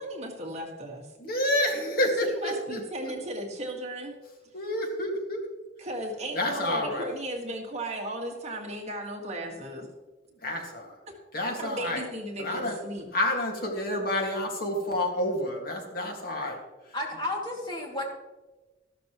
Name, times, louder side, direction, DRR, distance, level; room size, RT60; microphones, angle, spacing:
voice 1, 0.0-1.1 2.2-4.1 5.8-9.9 11.6-13.1, right 1 dB, 40° right, 0 dB, 1.8 m, -35 dB
voice 2, 1.2-3.1 4.5-5.4 6.3-7.1 10.4-10.9 11.3-12.0 12.4-12.8 13.1-16.6, left 1 dB, 55° left, 1 dB, 2.0 m, -29 dB
voice 3, 16.9-18.0, left 1 dB, 25° left, -1 dB, 2.5 m, -32 dB
13.5 x 12.5 x 3.1 m, 1.2 s
head